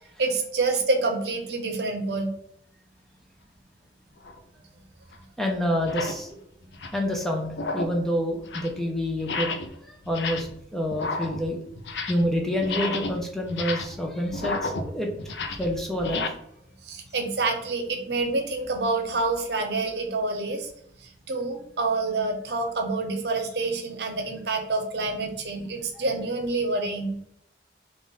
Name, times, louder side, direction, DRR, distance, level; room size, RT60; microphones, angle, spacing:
voice 1, 0.2-2.3 16.8-20.7 21.3-27.2, right 3 dB, 75° right, 4 dB, 0.7 m, -27 dB
sound 1, 4.2-4.4 5.1-5.2 5.8-6.2 6.6-7.1 7.5-8.0 8.3-8.8 9.2-9.8 10.0-10.6 10.9-12.3 12.6-16.3, left 3 dB, 85° left, 0.5 m, -32 dB
voice 2, 5.4-6.3 6.9-9.6 9.9-11.6 12.1-15.1 15.6-16.2 25.9-26.0, equal, ahead, 0 dB, 0.5 m, -27 dB
3.5 x 2.5 x 4.0 m, 0.71 s
head